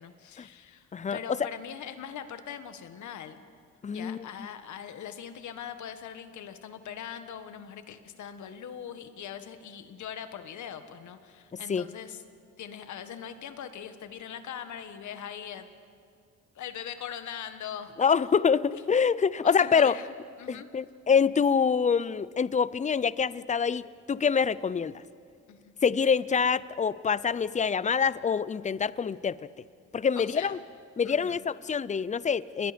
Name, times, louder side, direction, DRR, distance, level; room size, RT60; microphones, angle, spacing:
voice 1, 0.0-3.4 3.9-12.2 12.6-15.6 16.5-17.9 18.7-18.8 19.4-20.7 25.5-25.7 30.1-30.6 31.0-31.4, left 9 dB, 70° left, 9 dB, 1.6 m, -41 dB
voice 2, 3.8-4.2 11.7-11.9 18.0-20.0 20.5-24.9 25.8-29.4 29.9-30.6 31.0-32.7, left 6 dB, 25° left, 18 dB, 0.5 m, -25 dB
29.0 x 21.5 x 5.2 m, 2.3 s
cardioid pair, 90°, 30 cm